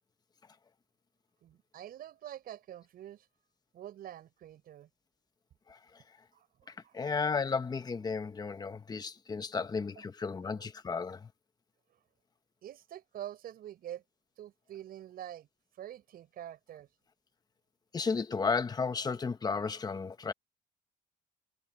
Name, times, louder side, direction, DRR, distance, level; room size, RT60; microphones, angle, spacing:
voice 1, 1.4-3.3 3.7-4.9 6.3-7.1 10.0-10.1 12.6-14.0 14.4-15.5 15.7-16.9, right 11 dB, 60° right, 7.1 m, -46 dB
voice 2, 5.7-6.0 6.7-11.3 17.9-20.3, left 5 dB, 25° left, 1.1 m, -34 dB
cardioid pair, 110°, 17 cm